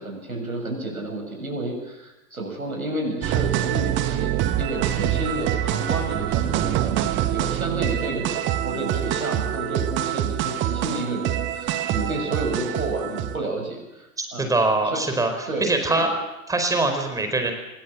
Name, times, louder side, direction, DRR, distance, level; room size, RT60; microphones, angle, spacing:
voice 1, 0.0-14.6 14.8-15.0 15.5-16.1, right 2 dB, 80° right, 2 dB, 7.7 m, -31 dB
sound 1, 3.2-13.4, right 12 dB, 25° right, 1.6 m, -25 dB
voice 2, 14.2-16.1 16.5-17.5, right 2 dB, 10° right, 6 dB, 4.7 m, -23 dB
26.5 x 20.5 x 7.5 m, 0.99 s
figure-of-eight pair, 100°, 42 cm